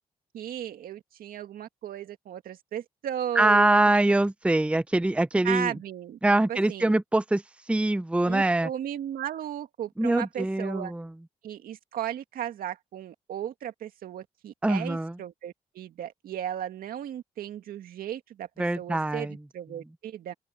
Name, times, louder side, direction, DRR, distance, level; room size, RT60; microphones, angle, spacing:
voice 1, 0.3-3.9 5.4-6.2 6.5-6.9 8.2-10.9 11.4-20.3, right 10 dB, 80° right, 2.1 m, -35 dB
voice 2, 3.4-5.7 6.2-7.4 7.7-8.7 10.0-11.0 14.6-15.1 18.6-19.3, right 2 dB, 10° right, 0.6 m, -23 dB
open air
supercardioid pair, 60°, 15 cm